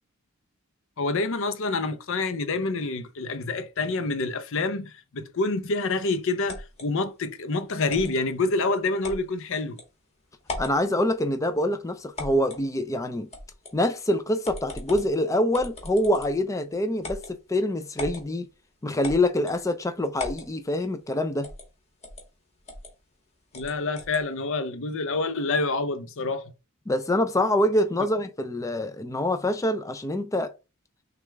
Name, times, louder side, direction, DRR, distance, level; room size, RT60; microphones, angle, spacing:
voice 1, 1.0-9.8 23.5-26.5, left 3 dB, 65° left, 0.6 m, -27 dB
sound 1, 6.5-6.9 7.9-8.1 9.0-9.2 9.8-9.9 10.4-10.8 12.2-12.6 13.3-13.8 14.4-15.1 15.5-16.4 17.0-17.3 18.0-18.2 19.0-19.6 20.2-20.5 21.4-21.7 22.0-22.2 22.7-22.9 23.5-24.2, left 2 dB, 30° left, 1.4 m, -37 dB
voice 2, 10.6-13.3 13.7-18.5 18.8-21.5 26.9-30.5, left 1 dB, 15° left, 0.4 m, -25 dB
6.3 x 2.4 x 3.3 m
head